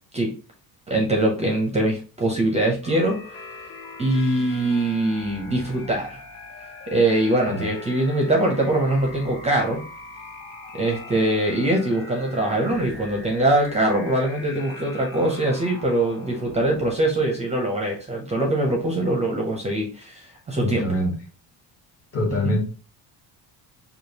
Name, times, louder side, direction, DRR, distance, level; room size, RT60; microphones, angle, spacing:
voice 1, 0.9-3.4 4.0-6.2 6.9-9.8 10.7-20.2 20.5-20.9 22.4-22.5, right 1 dB, 15° right, 0 dB, 0.5 m, -22 dB
sound 1, 2.8-17.4, left 3 dB, 80° left, 1.4 m, -41 dB
voice 2, 20.6-21.1 22.1-22.6, left 1 dB, 40° left, 0 dB, 1.2 m, -24 dB
4.8 x 2.4 x 2.8 m, 0.34 s
cardioid pair, 180°, 39 cm